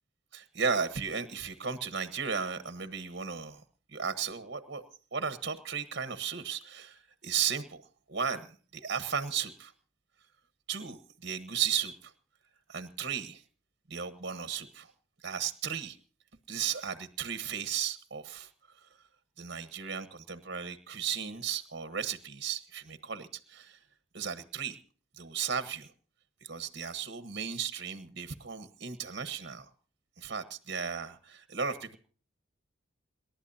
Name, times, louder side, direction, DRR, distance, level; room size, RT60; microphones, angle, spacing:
voice 1, 0.3-3.6 3.9-4.8 5.1-7.8 8.1-9.7 10.7-12.1 12.7-13.4 13.9-14.9 15.2-16.0 16.5-18.5 19.4-23.8 24.1-24.8 25.2-25.9 26.4-29.7 30.2-32.0, right 7 dB, 55° right, 12 dB, 1.2 m, -35 dB
28.0 x 12.0 x 2.8 m, 0.41 s
head